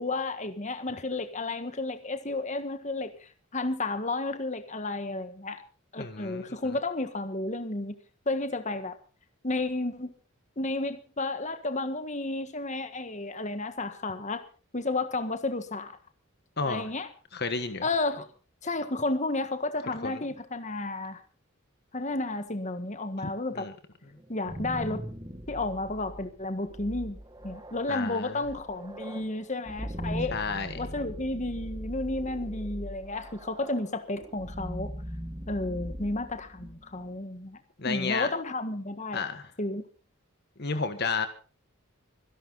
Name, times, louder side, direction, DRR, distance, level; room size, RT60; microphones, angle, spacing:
voice 1, 0.0-5.6 5.9-8.0 8.2-9.0 9.4-10.1 10.6-14.4 14.7-16.0 16.6-17.1 17.8-18.3 18.6-21.2 21.9-23.7 24.3-25.0 25.5-30.4 30.7-34.9 35.5-37.6 37.8-39.2 39.6-39.8, left 2 dB, 35° left, 1.6 m, -32 dB
voice 2, 6.0-6.8 16.6-16.9 17.3-17.8 20.0-20.2 23.5-23.7 27.9-28.4 30.3-30.7 37.8-38.3 39.1-39.4 40.6-41.3, left 4 dB, 50° left, 1.4 m, -31 dB
sound 1, 24.2-37.1, equal, 20° right, 2.1 m, -40 dB
25.5 x 11.0 x 4.0 m
head